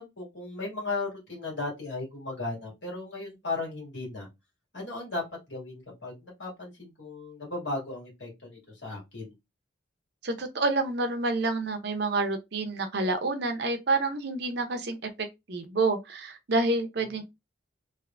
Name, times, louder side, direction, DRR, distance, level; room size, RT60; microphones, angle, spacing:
voice 1, 0.0-4.3 4.7-5.2 5.5-9.3, left 3 dB, 65° left, 2.1 m, -36 dB
voice 2, 10.2-15.0 15.5-17.2, right 3 dB, 55° right, 0.6 m, -28 dB
3.3 x 2.6 x 2.4 m
head